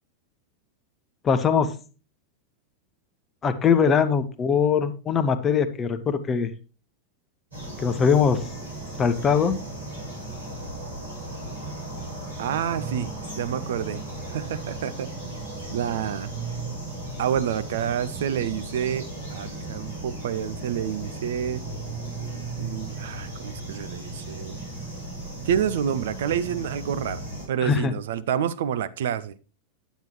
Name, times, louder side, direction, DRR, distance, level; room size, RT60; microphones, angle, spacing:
voice 1, 1.2-1.7 3.4-6.5 7.8-8.4 9.0-9.6 27.6-27.9, left 6 dB, 25° left, 0.9 m, -21 dB
sound 1, 7.5-27.5, right 2 dB, 80° right, 5.1 m, -36 dB
voice 2, 12.4-14.0 14.3-15.1 15.7-16.3 17.2-21.6 22.6-24.6 25.4-27.2 27.5-29.3, right 9 dB, 60° right, 0.5 m, -28 dB
9.2 x 9.0 x 3.1 m
figure-of-eight pair, 90°, 0 cm